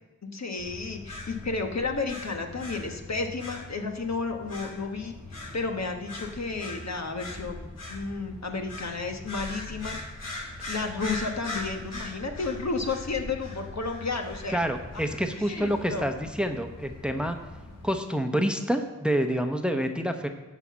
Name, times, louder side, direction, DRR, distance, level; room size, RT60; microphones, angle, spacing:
voice 1, 0.3-10.0 10.7-14.6 14.9-15.0 15.4-16.2, left 4 dB, 60° left, 4 dB, 1.2 m, -32 dB
sound 1, 0.6-17.9, left 2 dB, 85° left, 3.3 m, -41 dB
voice 2, 14.5-17.4 17.8-20.3, equal, 5° right, 6 dB, 0.9 m, -27 dB
11.0 x 4.2 x 7.4 m, 1.1 s
cardioid pair, 40°, 31 cm